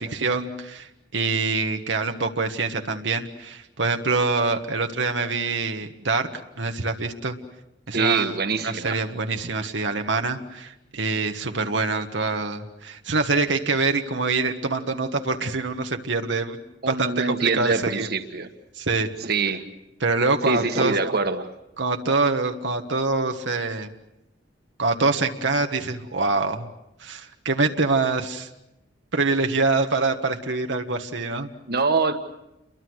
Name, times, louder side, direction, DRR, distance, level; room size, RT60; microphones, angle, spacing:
voice 1, 0.0-7.4 7.9-8.3 8.6-16.6 16.9-18.1 18.7-19.1 20.0-20.9 21.8-23.9 24.8-26.7 27.0-28.5 29.1-31.5, right 3 dB, 85° right, 4 dB, 1.5 m, -25 dB
voice 2, 7.9-9.0 16.8-18.5 19.2-19.6 20.4-21.5 31.7-32.1, right 4 dB, 60° right, 7 dB, 1.5 m, -24 dB
29.5 x 23.0 x 6.4 m, 0.89 s
head